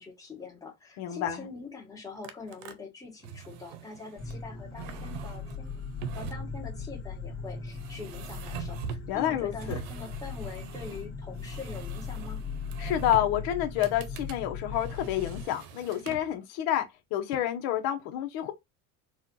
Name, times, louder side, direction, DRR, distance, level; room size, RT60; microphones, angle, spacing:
voice 1, 0.0-5.8 6.1-12.4, left 4 dB, 10° left, 1.4 m, -44 dB
voice 2, 1.0-1.5 9.1-9.8 12.8-16.8 17.1-18.5, left 12 dB, 75° left, 1.0 m, -29 dB
sound 1, 2.2-2.7 3.2-4.4 4.7-6.6 7.7-9.2 9.5-11.1 11.4-13.4 13.8-14.4 14.7-16.4, right 8 dB, 90° right, 0.9 m, -43 dB
sound 2, 4.2-15.4, left 5 dB, 35° left, 1.6 m, -39 dB
4.3 x 2.5 x 3.8 m
cardioid pair, 140°, 38 cm